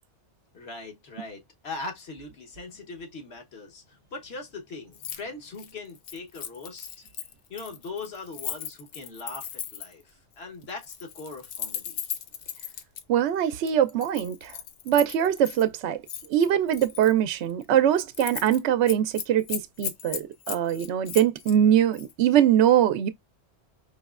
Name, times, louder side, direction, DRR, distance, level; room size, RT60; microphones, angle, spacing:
voice 1, 0.5-7.1 7.5-12.0, left 3 dB, 65° left, 1.3 m, -40 dB
Keys jangling, 4.9-5.2 5.5-10.0 10.7-13.0 13.7-15.6 16.1-17.1 17.5-17.7 18.0-18.6 18.9-21.6 21.9-22.1, left 9 dB, 85° left, 0.9 m, -37 dB
voice 2, 13.1-14.5 14.9-16.0 16.3-23.1, right 10 dB, 75° right, 0.8 m, -22 dB
4.7 x 3.0 x 2.3 m
omnidirectional pair, 1.2 m